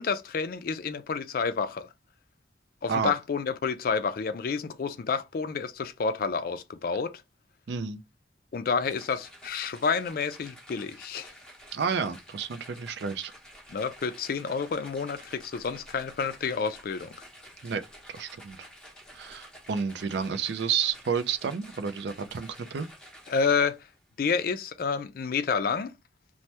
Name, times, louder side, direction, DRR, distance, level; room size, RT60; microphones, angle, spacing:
voice 1, 0.0-1.9 2.8-7.1 8.5-11.3 13.7-17.1 23.3-23.8 24.2-25.9, left 5 dB, 50° left, 0.4 m, -29 dB
voice 2, 7.7-8.0 11.7-13.3 17.6-17.8 18.1-18.6 19.1-22.9, right 6 dB, 70° right, 0.4 m, -30 dB
sound 1, 8.8-24.0, equal, 5° left, 0.8 m, -50 dB
3.2 x 2.1 x 2.8 m
head